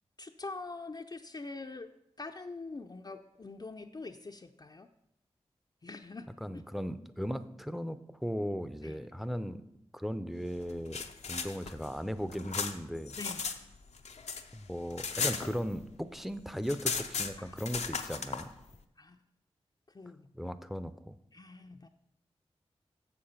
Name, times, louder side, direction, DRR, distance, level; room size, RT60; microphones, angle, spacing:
voice 1, 0.2-1.9 2.2-4.9 5.8-6.6 8.8-9.0 13.2-13.4 17.4-17.6 19.0-19.2 19.9-20.3 21.3-21.9, left 3 dB, 40° left, 4 dB, 0.5 m, -44 dB
voice 2, 6.4-9.7 9.9-11.0 11.3-13.2 14.5-18.5 20.3-21.1, equal, ahead, 11 dB, 0.6 m, -37 dB
sound 1, 10.7-13.6 13.9-16.0 16.3-16.4 16.6-18.4, left 5 dB, 85° left, 0.6 m, -36 dB
7.2 x 6.8 x 5.7 m, 0.81 s
cardioid pair, 45°, 11 cm